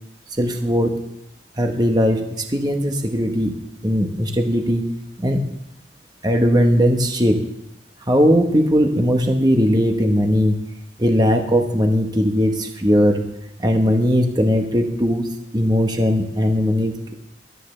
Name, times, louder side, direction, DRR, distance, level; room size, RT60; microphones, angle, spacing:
voice 1, 0.4-1.0 1.6-3.6 3.8-4.8 5.2-5.4 6.2-7.4 8.1-10.6 11.0-13.2 13.6-17.1, equal, 20° right, 4 dB, 1.1 m, -19 dB
20.5 x 13.0 x 3.3 m, 0.80 s
head